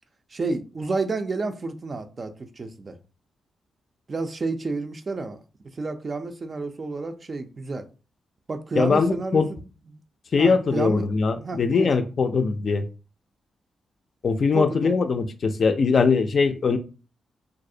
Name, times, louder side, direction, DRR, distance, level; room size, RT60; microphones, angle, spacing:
voice 1, 0.3-3.0 4.1-5.4 5.8-7.9 8.5-9.6 9.9-10.0 10.4-11.0 11.4-11.9 14.5-14.9, right 3 dB, 40° right, 0.4 m, -30 dB
voice 2, 8.8-9.5 10.3-12.8 14.2-16.8, left 4 dB, 55° left, 0.3 m, -21 dB
2.4 x 2.0 x 2.6 m
cardioid pair, 65°, 0 cm